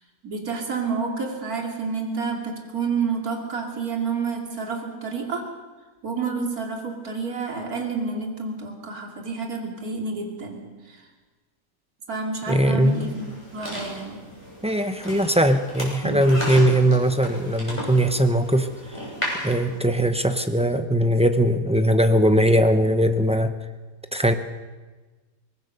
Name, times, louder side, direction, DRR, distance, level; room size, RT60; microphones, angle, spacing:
voice 1, 0.2-5.4 6.0-11.1 12.1-14.2, right 4 dB, 55° right, 1 dB, 3.2 m, -29 dB
voice 2, 12.5-13.1 14.6-18.7 19.4-23.5 24.1-24.3, right 1 dB, 10° right, 8 dB, 0.3 m, -20 dB
sound 1, 12.8-19.8, equal, 15° left, 7.1 m, -34 dB
24.0 x 19.5 x 6.7 m, 1.3 s
omnidirectional pair, 1.8 m